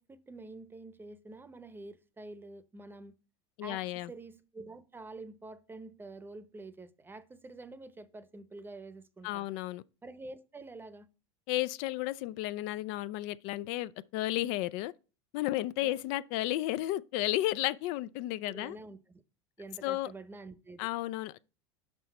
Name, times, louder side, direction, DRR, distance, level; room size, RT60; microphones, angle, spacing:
voice 1, 0.0-3.1 3.6-9.5 10.0-11.1 15.8-16.0 18.5-19.2 19.6-20.9, right 2 dB, 15° right, 0.8 m, -47 dB
voice 2, 3.6-4.1 9.2-9.8 11.5-14.9 15.3-18.8 19.8-20.1 20.8-21.5, left 16 dB, 60° left, 0.4 m, -33 dB
6.0 x 5.4 x 4.2 m
hypercardioid pair, 95°, 14 cm